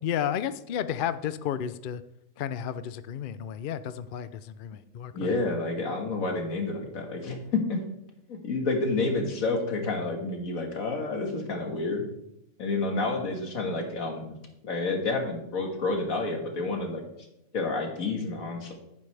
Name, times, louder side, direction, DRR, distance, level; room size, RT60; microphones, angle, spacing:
voice 1, 0.0-2.0 2.4-5.3, left 9 dB, 65° left, 13 dB, 0.5 m, -32 dB
voice 2, 5.1-7.8 8.3-12.0 12.6-14.4 14.6-17.0 17.5-18.7, left 3 dB, 80° left, 2 dB, 2.1 m, -29 dB
10.5 x 9.4 x 3.3 m, 0.86 s
omnidirectional pair, 1.4 m